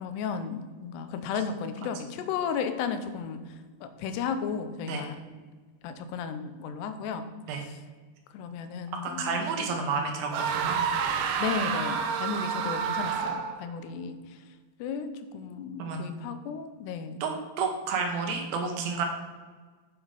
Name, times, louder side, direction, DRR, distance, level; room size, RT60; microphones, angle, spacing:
voice 1, 0.0-5.2 5.8-7.3 7.6-7.8 8.3-9.8 11.4-14.4 14.8-17.2, left 6 dB, 90° left, 9 dB, 2.9 m, -34 dB
voice 2, 9.0-10.8 15.8-16.0 17.2-17.3 17.6-19.1, right 5 dB, 70° right, 3 dB, 2.8 m, -30 dB
sound 1, 10.3-13.7, right 7 dB, 90° right, 1.9 m, -29 dB
7.5 x 7.2 x 5.0 m, 1.4 s
omnidirectional pair, 4.7 m